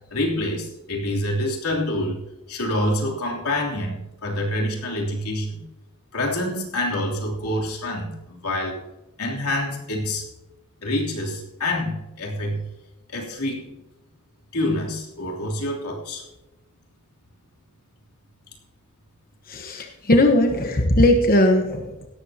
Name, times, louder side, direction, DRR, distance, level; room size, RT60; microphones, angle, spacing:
voice 1, 0.1-2.2 2.5-5.6 6.1-8.8 9.2-10.2 10.8-12.6 13.1-13.7 14.5-16.2, left 1 dB, 85° left, 3.1 m, -26 dB
voice 2, 19.5-22.1, left 1 dB, 40° left, 1.1 m, -19 dB
17.0 x 13.5 x 2.8 m
head